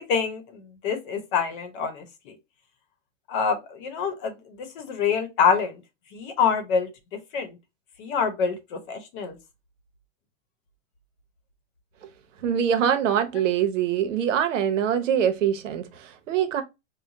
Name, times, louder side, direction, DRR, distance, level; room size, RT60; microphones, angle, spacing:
voice 1, 0.0-2.4 3.3-4.3 4.6-5.8 6.1-6.9 7.3-7.6 8.0-9.4, left 6 dB, 40° left, 1.0 m, -26 dB
voice 2, 12.4-16.6, right 9 dB, 75° right, 0.9 m, -24 dB
4.8 x 2.2 x 2.7 m
supercardioid pair, 150°, 38 cm